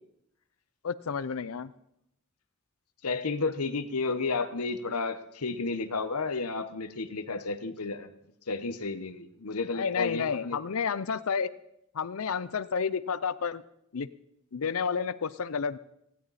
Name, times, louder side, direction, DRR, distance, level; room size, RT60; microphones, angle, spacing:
voice 1, 0.8-1.7 9.7-11.5 11.9-13.6 13.9-14.1 14.5-15.8, left 6 dB, 70° left, 17 dB, 0.5 m, -30 dB
voice 2, 3.0-8.1 8.5-10.6, left 3 dB, 85° left, 11 dB, 1.2 m, -32 dB
18.5 x 16.5 x 4.2 m, 0.78 s
head